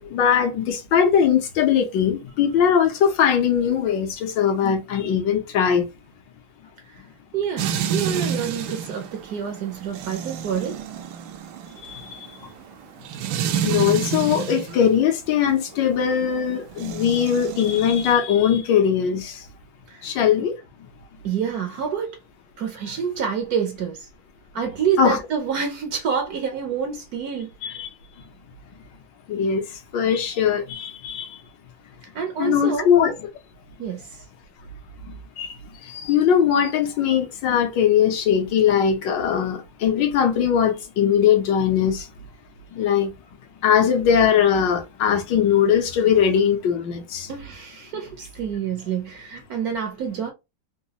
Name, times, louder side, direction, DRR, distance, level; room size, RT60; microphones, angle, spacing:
voice 1, 0.0-5.8 13.6-19.3 20.0-20.5 25.0-25.2 27.6-27.9 29.3-29.6 29.9-31.3 32.4-33.1 35.4-35.5 35.9-42.0 42.8-43.1 43.6-47.3, left 8 dB, 75° left, 1.4 m, -20 dB
voice 2, 7.3-10.8 19.9-20.1 21.2-22.2 22.6-24.1 24.5-27.5 32.1-32.9 33.8-34.2 47.3-50.3, right 7 dB, 65° right, 0.9 m, -27 dB
sound 1, 7.6-14.8 16.7-18.1, right 8 dB, 80° right, 1.3 m, -29 dB
3.9 x 2.3 x 2.8 m
omnidirectional pair, 2.0 m